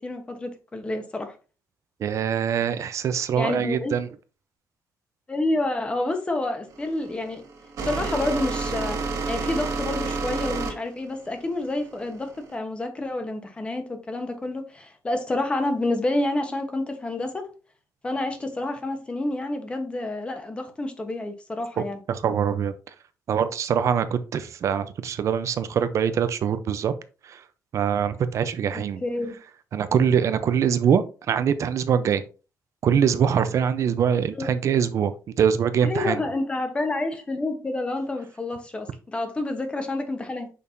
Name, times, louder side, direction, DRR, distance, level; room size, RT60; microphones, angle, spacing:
voice 1, 0.0-1.3 3.3-3.9 5.3-7.4 7.8-9.0 9.3-17.5 18.0-22.0 29.0-29.4 34.3-34.5 35.8-40.5, left 2 dB, 15° left, 1.1 m, -28 dB
voice 2, 2.0-4.1 22.1-22.7 23.3-26.9 27.2-27.4 27.7-29.0 29.7-32.2 32.8-36.2, right 8 dB, 50° right, 0.6 m, -23 dB
sound 1, 6.7-12.6, right 4 dB, 65° right, 2.1 m, -30 dB
6.6 x 5.4 x 2.7 m
cardioid pair, 170°, 6 cm